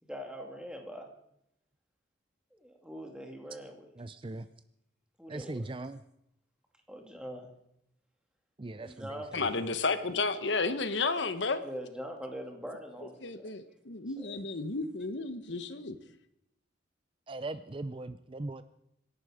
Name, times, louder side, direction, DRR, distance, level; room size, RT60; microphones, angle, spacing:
voice 1, 0.0-1.1 2.5-3.9 5.2-5.7 6.9-7.5 8.8-9.5 11.6-13.5 14.2-14.4, equal, 5° right, 2 dB, 2.3 m, -43 dB
voice 2, 4.0-4.5 5.3-6.0 8.6-9.5 17.3-18.6, right 2 dB, 25° right, 12 dB, 0.5 m, -39 dB
voice 3, 9.3-11.6 13.2-16.0, left 3 dB, 65° left, 11 dB, 1.1 m, -32 dB
25.5 x 11.0 x 5.0 m, 0.78 s
head